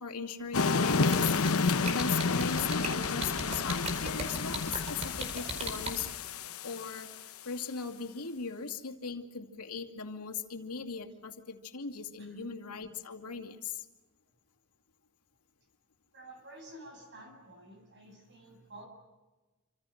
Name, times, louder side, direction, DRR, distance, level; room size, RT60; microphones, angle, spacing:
voice 1, 0.0-1.4 1.9-7.1 7.4-13.9, left 5 dB, 90° left, 5 dB, 2.4 m, -39 dB
sound 1, 0.5-7.2, left 4 dB, 70° left, 1.0 m, -30 dB
sound 2, 0.9-5.9, right 2 dB, 30° right, 4.6 m, -36 dB
voice 2, 16.1-18.9, right 1 dB, 55° right, 4 dB, 7.7 m, -51 dB
27.5 x 26.5 x 6.5 m, 1.2 s
head